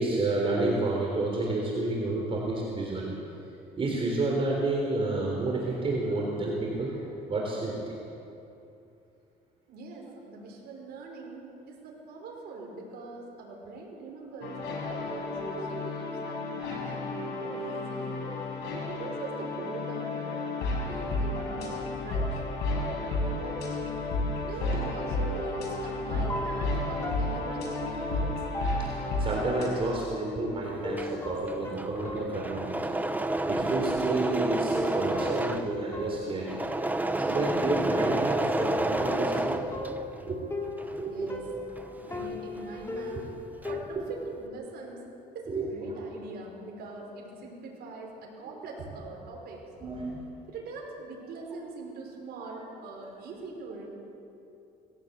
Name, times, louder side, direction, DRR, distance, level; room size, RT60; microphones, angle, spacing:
voice 1, 0.0-3.1 3.8-8.0 20.8-21.3 24.1-24.3 28.8-32.8 33.5-36.6 37.2-39.7 40.2-40.4 40.9-41.3 41.8-42.1 42.9-43.0 45.5-45.7 49.8-50.2 52.4-52.5, right 2 dB, 35° right, -2 dB, 3.8 m, -30 dB
voice 2, 9.7-18.2 18.7-22.4 22.8-23.7 24.4-28.3 41.0-41.4 42.0-43.3 43.7-45.1 45.3-49.7 50.5-53.9, right 3 dB, 70° right, -2 dB, 5.4 m, -42 dB
sound 1, 14.4-29.7, left 2 dB, 80° left, 6.0 m, -32 dB
sound 2, 25.7-29.5 30.8-33.4 33.8-33.9 34.7-37.2 38.6-43.8, left 1 dB, 15° left, 3.2 m, -38 dB
Engine / Mechanisms, 30.7-40.3 40.7-43.0 43.3-44.0, right 2 dB, 10° right, 1.0 m, -30 dB
20.0 x 16.0 x 8.2 m, 2.7 s
cardioid pair, 110°, 17 cm